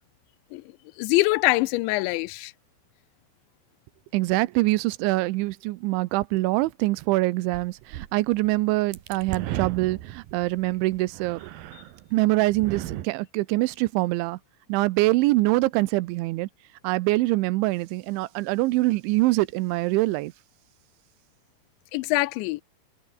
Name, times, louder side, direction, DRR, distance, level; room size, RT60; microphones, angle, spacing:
voice 1, 1.0-2.5 21.9-22.6, left 21 dB, 85° left, 2.9 m, -23 dB
voice 2, 4.1-11.5 12.1-14.4 14.7-16.5 16.8-20.3, right 20 dB, 85° right, 3.1 m, -24 dB
sound 1, 7.5-12.1 12.4-13.1, right 13 dB, 65° right, 2.5 m, -36 dB
omnidirectional pair, 5.4 m